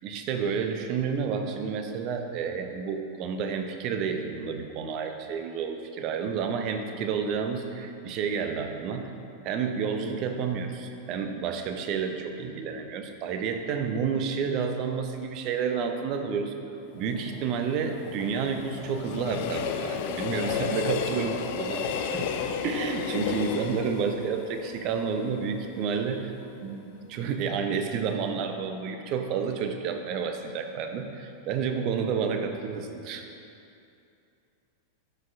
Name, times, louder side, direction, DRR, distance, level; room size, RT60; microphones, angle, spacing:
voice 1, 0.0-9.1 9.4-16.5 16.9-22.3 22.6-26.3 26.6-33.3, right 6 dB, 40° right, 5 dB, 0.6 m, -30 dB
Train, 17.0-26.0 26.4-26.5, left 7 dB, 50° left, 0.4 m, -33 dB
12.5 x 5.5 x 2.5 m, 2.6 s
figure-of-eight pair, 90°, 0 cm